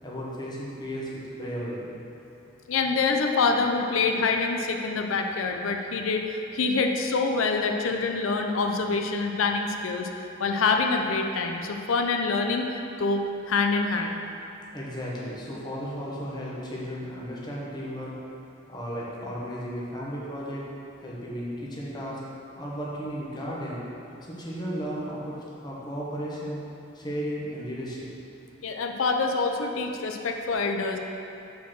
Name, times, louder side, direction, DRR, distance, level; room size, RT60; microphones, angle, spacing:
voice 1, 0.0-1.1 1.4-1.9 14.7-18.1 18.7-20.6 21.0-22.2 22.6-23.8 24.2-25.3 25.6-26.6 26.9-28.1, equal, 20° left, -6 dB, 1.2 m, -34 dB
voice 2, 2.7-6.2 6.5-10.1 10.4-12.7 13.0-13.2 13.5-14.2 28.6-31.0, left 4 dB, 90° left, 3 dB, 0.5 m, -25 dB
5.5 x 4.4 x 6.2 m, 2.7 s
head